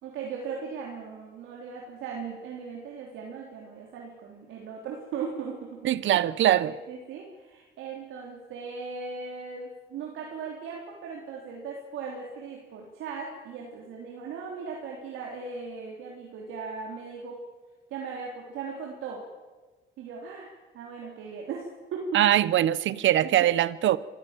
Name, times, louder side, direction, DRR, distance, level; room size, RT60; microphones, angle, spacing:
voice 1, 0.0-5.8 6.6-17.4 17.9-19.2 20.0-21.7 21.9-22.1 23.2-23.5, right 5 dB, 90° right, -1 dB, 3.5 m, -38 dB
voice 2, 5.8-6.7 22.1-24.0, right 12 dB, 70° right, 18 dB, 0.9 m, -22 dB
25.5 x 15.5 x 9.0 m, 1.3 s
cardioid pair, 90°, 20 cm